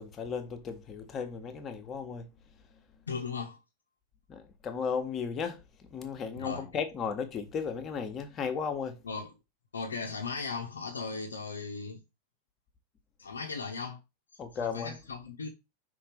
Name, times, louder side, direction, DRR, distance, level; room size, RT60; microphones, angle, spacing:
voice 1, 0.0-2.3 2.7-2.8 4.3-9.0 14.4-14.9, left 6 dB, 30° left, 1.3 m, -35 dB
voice 2, 3.1-3.6 6.4-6.7 9.0-9.3 9.7-12.0 13.2-14.0 14.6-15.5, left 4 dB, 70° left, 1.0 m, -37 dB
5.8 x 3.9 x 5.1 m
figure-of-eight pair, 90°, 0 cm